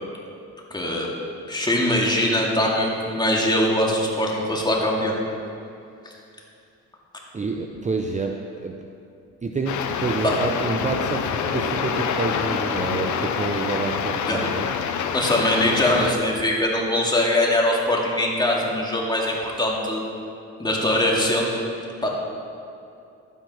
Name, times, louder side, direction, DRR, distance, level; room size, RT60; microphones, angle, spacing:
voice 1, 0.7-1.1 1.5-5.2 6.0-6.1 10.2-10.3 14.3-14.4 15.1-20.1 20.6-21.5 22.0-22.1, left 1 dB, 15° left, -3 dB, 2.4 m, -22 dB
voice 2, 7.3-8.9 9.4-14.7, right 4 dB, 25° right, 3 dB, 0.7 m, -28 dB
sound 1, 9.7-16.1, left 7 dB, 70° left, 0.9 m, -26 dB
12.0 x 9.3 x 5.6 m, 2.6 s
cardioid pair, 90°, 30 cm